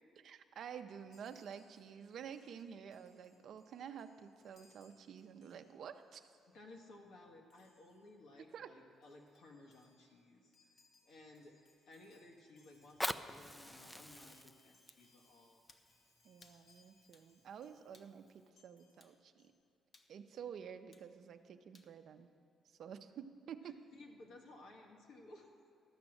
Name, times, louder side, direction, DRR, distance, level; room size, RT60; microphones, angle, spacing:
voice 1, 0.2-6.3 8.5-8.7 16.2-19.5 20.1-22.3 22.8-23.8, right 8 dB, 65° right, 8 dB, 0.6 m, -50 dB
Chime, 1.1-6.1 6.4-6.6 7.5-8.1 8.7-8.8 8.9-17.9 18.3-19.5, left 3 dB, 65° left, 1.8 m, -73 dB
voice 2, 6.5-10.5 11.0-11.6 11.9-15.6 23.6-25.5, left 2 dB, 85° left, 1 dB, 1.5 m, -58 dB
Fire, 12.7-17.7 18.3-18.4, equal, 5° left, 0.4 m, -46 dB
sound 1, 15.7-15.9 16.4-16.6 17.1-17.3 17.9-18.1 19.0-19.2 19.9-20.1 20.9-21.1 21.7-21.9, left 3 dB, 40° left, 0.9 m, -65 dB
13.0 x 6.0 x 7.7 m, 2.5 s
cardioid pair, 90°, 0 cm